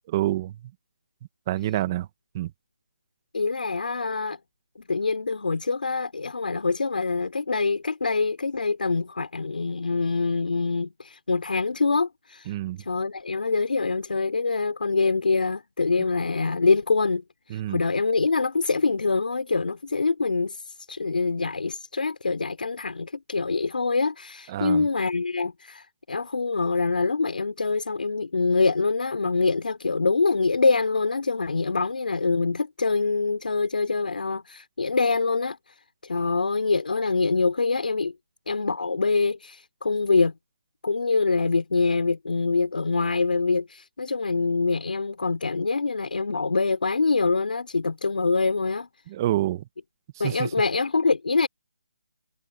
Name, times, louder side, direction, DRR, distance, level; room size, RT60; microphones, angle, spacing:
voice 1, 0.1-0.5 1.5-2.1 2.3-2.5 12.5-12.8 17.5-17.8 24.5-24.9 49.1-49.6 50.2-50.5, right 14 dB, 20° right, 1.4 m, -27 dB
voice 2, 3.3-4.4 4.8-38.1 38.5-40.3 40.8-48.9 50.2-51.5, left 4 dB, 70° left, 5.4 m, -25 dB
hypercardioid pair, 165°, 5 cm